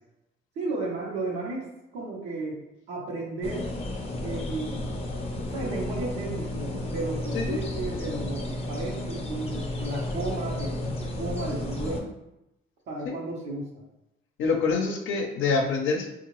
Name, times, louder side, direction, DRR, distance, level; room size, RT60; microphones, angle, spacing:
voice 1, 0.6-1.7 1.9-2.6 2.9-3.7 4.2-4.8 5.5-12.1 12.9-13.8, right 2 dB, 90° right, -6 dB, 0.8 m, -33 dB
sound 1, 3.4-12.0, left 1 dB, 30° left, 0.6 m, -32 dB
voice 2, 14.4-16.1, left 4 dB, 80° left, 2 dB, 0.6 m, -26 dB
3.7 x 2.4 x 3.0 m, 0.89 s
cardioid pair, 90°, 20 cm